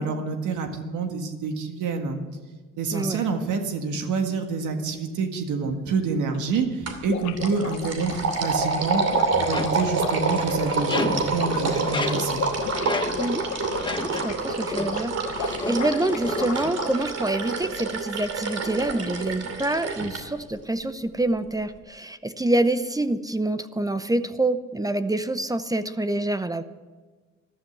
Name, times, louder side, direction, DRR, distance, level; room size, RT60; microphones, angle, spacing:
voice 1, 0.0-2.2 2.8-9.0 9.4-12.4, right 4 dB, 80° right, 5 dB, 1.9 m, -27 dB
voice 2, 2.9-3.2 13.2-13.5 14.0-26.6, right 2 dB, 10° right, 11 dB, 0.7 m, -26 dB
sound 1, 5.7-5.8 6.0-6.1 6.3-6.4 6.7-17.0, left 10 dB, 70° left, 1.0 m, -35 dB
sound 2, 6.9-7.1 7.4-20.2, right 4 dB, 55° right, 2.6 m, -28 dB
sound 3, 9.3-14.4 14.7-15.0 15.4-16.7, left 3 dB, 15° left, 1.2 m, -33 dB
14.5 x 11.5 x 7.9 m, 1.3 s
cardioid pair, 90°, 30 cm